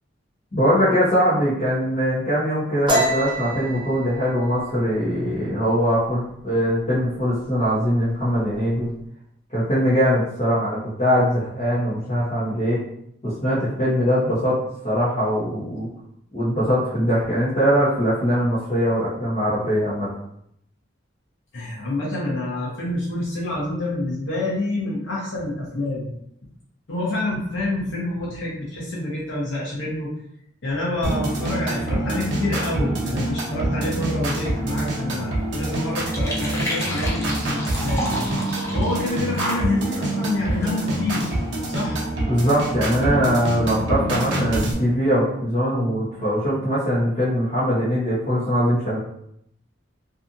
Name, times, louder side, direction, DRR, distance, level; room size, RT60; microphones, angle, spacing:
voice 1, 0.5-8.9 9.5-12.8 13.2-15.9 16.3-20.1 42.3-49.0, equal, 35° left, -11 dB, 0.9 m, -21 dB
sound 1, 2.9-6.3 6.6-7.0 7.3-7.9 8.1-8.9, right 1 dB, 25° right, 0.6 m, -27 dB
voice 2, 21.5-26.1 26.9-30.1 30.6-38.3 38.7-41.2 41.7-42.3, left 1 dB, 80° left, -5 dB, 0.8 m, -27 dB
sound 2, 31.0-44.7, right 1 dB, 65° right, 0.7 m, -26 dB
sound 3, 34.5-41.7, equal, 15° left, 0.5 m, -33 dB
2.7 x 2.4 x 2.5 m, 0.73 s
head